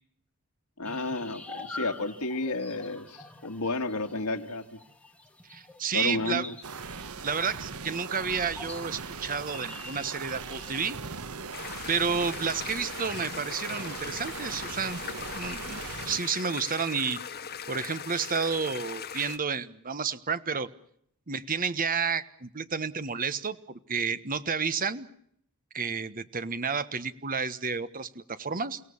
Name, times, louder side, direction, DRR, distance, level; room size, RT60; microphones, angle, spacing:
voice 1, 0.8-4.8 5.9-6.6, left 2 dB, 85° left, 4 dB, 2.0 m, -32 dB
sound 1, 0.8-10.8, left 2 dB, 5° left, 2.6 m, -46 dB
voice 2, 5.5-6.5 7.2-11.0 11.9-15.0 15.3-15.8 16.0-17.2 17.7-20.7 21.3-25.1 25.7-28.8, right 5 dB, 40° right, 13 dB, 1.3 m, -31 dB
sound 2, 6.6-16.2, right 5 dB, 75° right, 1.2 m, -40 dB
sound 3, 11.5-19.4, left 7 dB, 45° left, 1.8 m, -40 dB
30.0 x 17.5 x 7.2 m, 0.69 s
head